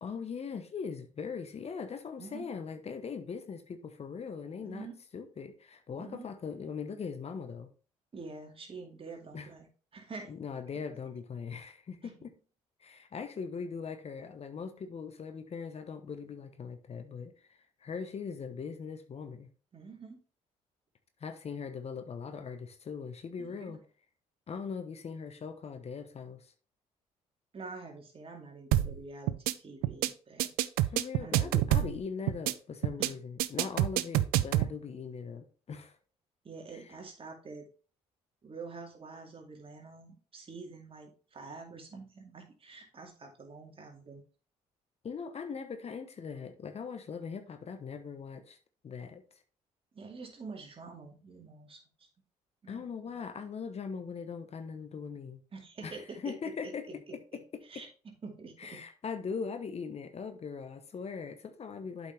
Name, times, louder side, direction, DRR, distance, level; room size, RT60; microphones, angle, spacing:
voice 1, 0.0-4.9 5.1-7.7 9.3-9.5 10.3-12.3 12.8-19.5 21.2-23.8 24.5-26.5 30.9-36.0 36.7-36.8 45.0-48.6 48.8-49.2 52.7-55.4 55.8-57.8 58.6-62.1, left 6 dB, 45° left, 1.0 m, -40 dB
voice 2, 4.6-5.0 6.0-6.3 8.1-9.7 9.9-10.3 12.0-12.1 19.7-20.2 23.4-23.8 27.5-30.5 31.2-31.9 33.0-33.1 36.4-37.7 38.4-44.2 49.9-52.1 52.6-53.2 55.5-58.8, right 4 dB, 40° right, 2.3 m, -47 dB
sound 1, 28.7-29.0 29.3-29.5 29.8-30.1 30.4-32.0 32.3-32.5 32.8-33.1 33.4-34.7, right 14 dB, 80° right, 0.4 m, -27 dB
8.1 x 5.4 x 3.4 m
supercardioid pair, 65°, 15 cm